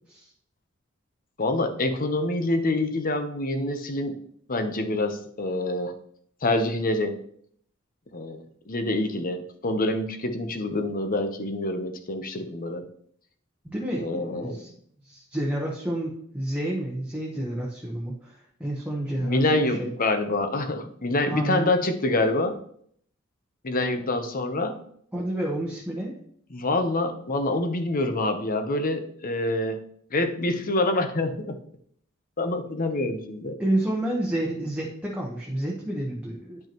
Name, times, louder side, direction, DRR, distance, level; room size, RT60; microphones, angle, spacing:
voice 1, 1.4-4.2 4.5-5.9 6.4-7.2 8.1-12.8 14.0-14.6 19.2-22.6 23.6-24.8 26.5-29.8 30.1-31.6 32.4-33.6, left 2 dB, 45° left, 7 dB, 0.9 m, -26 dB
voice 2, 13.6-14.7 15.0-19.9 21.3-21.7 23.9-24.0 25.1-26.2 33.6-36.6, right 1 dB, 5° right, -3 dB, 1.1 m, -30 dB
10.5 x 5.5 x 3.0 m, 0.64 s
head